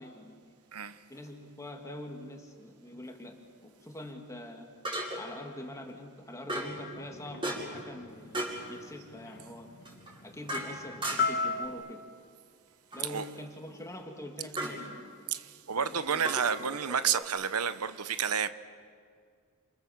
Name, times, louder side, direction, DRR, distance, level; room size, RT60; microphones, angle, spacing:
voice 1, 0.0-0.6 1.1-3.4 3.6-4.7 5.2-9.7 10.2-12.0 12.9-14.9 15.8-16.8, left 1 dB, 15° left, 2.5 m, -44 dB
sound 1, 1.1-1.3 4.8-5.4 6.5-6.8 7.4-7.9 8.3-8.6 9.8-11.5 12.9-13.3 14.6-14.8 16.2-17.2, right 1 dB, 25° right, 6.0 m, -36 dB
sound 2, 6.7-11.7, left 4 dB, 50° left, 1.3 m, -36 dB
voice 2, 15.3-18.5, right 7 dB, 85° right, 0.9 m, -30 dB
29.0 x 27.5 x 7.4 m
head